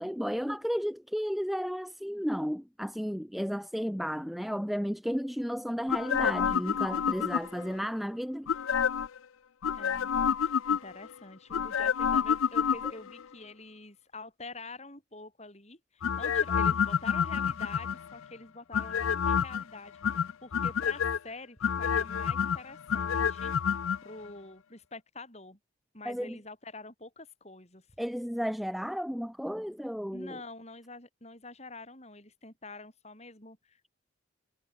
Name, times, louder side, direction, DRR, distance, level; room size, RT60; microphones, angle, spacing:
voice 1, 0.0-8.5 26.0-26.4 28.0-30.4, equal, ahead, 0.7 m, -33 dB
sound 1, 5.9-7.7 8.5-9.2 9.6-11.1 11.5-13.2 16.0-18.1 18.7-19.6 20.0-21.2 21.6-24.0 24.3-24.4, left 7 dB, 90° left, 0.5 m, -28 dB
voice 2, 9.8-10.1 10.4-20.0 20.4-23.5 24.0-25.6 25.9-27.8 30.1-33.9, left 3 dB, 30° left, 6.7 m, -46 dB
head